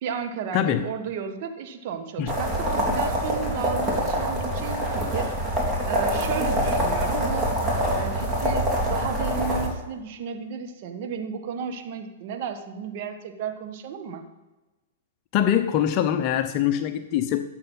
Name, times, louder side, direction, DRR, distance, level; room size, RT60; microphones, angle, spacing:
voice 1, 0.0-5.3 5.9-7.5 7.9-14.2, right 6 dB, 55° right, 6 dB, 1.5 m, -33 dB
voice 2, 0.5-0.8 2.2-2.3 15.3-17.4, left 10 dB, 40° left, 8 dB, 0.8 m, -23 dB
sound 1, 2.3-9.7, equal, 15° right, 3.4 m, -25 dB
12.0 x 8.0 x 5.6 m, 1.1 s
hypercardioid pair, 125°, 0 cm